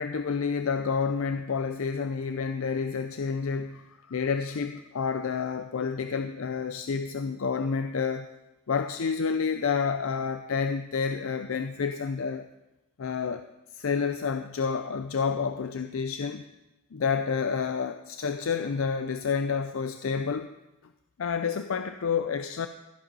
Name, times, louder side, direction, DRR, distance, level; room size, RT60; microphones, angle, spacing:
voice 1, 0.0-8.3 8.7-12.5 13.0-13.4 13.7-16.4 16.9-20.5 21.2-22.7, left 5 dB, 70° left, 8 dB, 0.5 m, -29 dB
13.5 x 7.6 x 5.4 m, 0.97 s
head